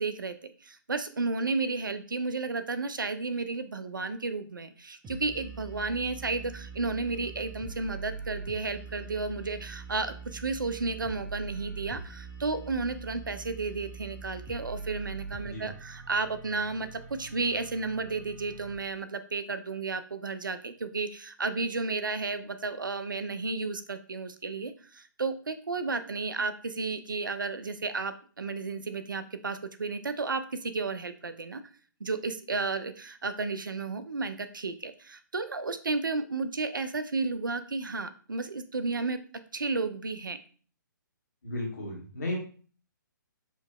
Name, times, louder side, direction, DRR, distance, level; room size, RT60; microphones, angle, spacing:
voice 1, 0.0-31.6 32.0-39.2 39.5-40.4, right 3 dB, 70° right, 12 dB, 0.4 m, -33 dB
sound 1, 5.0-18.8, right 4 dB, 10° right, 0.4 m, -43 dB
voice 2, 41.4-42.3, left 2 dB, 50° left, -2 dB, 1.5 m, -34 dB
4.4 x 2.7 x 2.3 m, 0.41 s
figure-of-eight pair, 130°, 11 cm